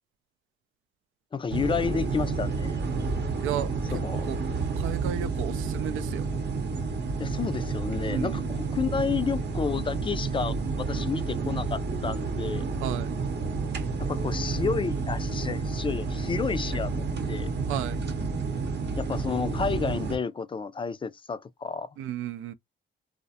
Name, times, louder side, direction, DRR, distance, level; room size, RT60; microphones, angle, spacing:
voice 1, 1.3-2.8 3.9-4.3 7.2-12.6 14.0-17.5 19.0-21.9, left 5 dB, 25° left, 0.4 m, -31 dB
sound 1, 1.5-20.2, right 4 dB, 60° right, 0.8 m, -30 dB
voice 2, 3.4-4.0 4.3-4.4 4.8-6.2 8.1-8.6 12.8-13.2 17.7-18.1 22.0-22.5, right 11 dB, 85° right, 0.4 m, -33 dB
2.4 x 2.0 x 2.7 m
cardioid pair, 90°, 20 cm